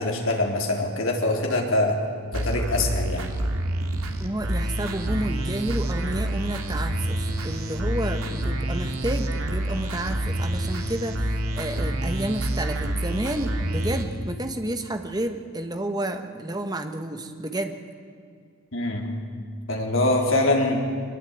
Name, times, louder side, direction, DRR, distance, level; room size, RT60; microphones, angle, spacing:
voice 1, 0.0-2.0 2.3-3.3 18.7-19.1 19.7-20.8, left 2 dB, 65° left, 0 dB, 3.8 m, -23 dB
sound 1, 2.3-14.0, right 1 dB, 75° right, 2.7 m, -27 dB
voice 2, 4.2-17.8, right 1 dB, 15° right, 6 dB, 1.3 m, -30 dB
23.0 x 20.5 x 9.0 m, 2.3 s
head